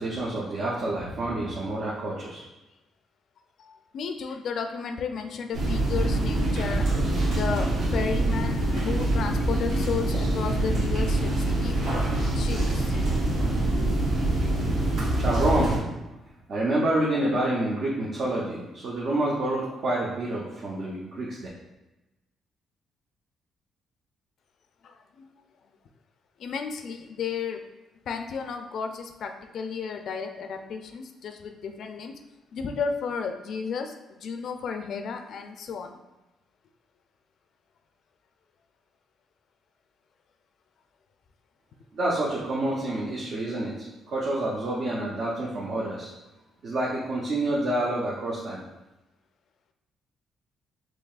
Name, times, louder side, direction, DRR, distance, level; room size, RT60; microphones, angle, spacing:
voice 1, 0.0-2.4 15.2-15.8 16.5-21.4 41.9-43.7 44.1-46.1 46.6-48.6, right 1 dB, 60° right, -5 dB, 0.7 m, -28 dB
voice 2, 3.6-6.9 7.4-12.0 12.4-13.1 24.8-25.3 26.4-27.7 28.1-32.1 32.5-36.0 43.6-43.8, left 6 dB, 65° left, 6 dB, 0.3 m, -33 dB
sound 1, 5.5-15.8, right 1 dB, 85° right, 1.4 m, -25 dB
4.6 x 3.1 x 2.4 m, 1.0 s
cardioid pair, 90°, 0 cm